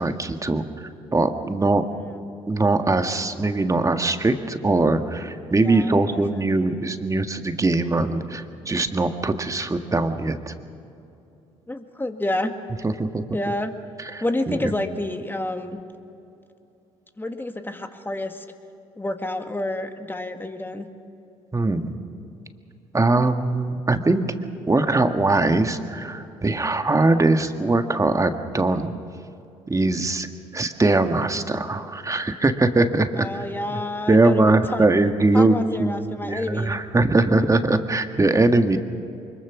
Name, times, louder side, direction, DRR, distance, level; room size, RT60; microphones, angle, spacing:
voice 1, 0.0-1.8 2.5-10.5 12.8-13.2 14.1-14.7 21.5-21.9 22.9-24.2 24.7-28.9 29.7-30.3 30.5-33.3 33.7-33.8 34.1-38.8, right 2 dB, 20° right, 7 dB, 1.6 m, -21 dB
voice 2, 5.6-6.4 11.7-12.5 13.3-13.7 14.2-15.8 17.2-18.5 19.0-20.9 33.2-34.8 35.3-36.8, left 1 dB, 15° left, 6 dB, 2.0 m, -29 dB
24.0 x 22.0 x 6.1 m, 2.7 s
hypercardioid pair, 55°, 15 cm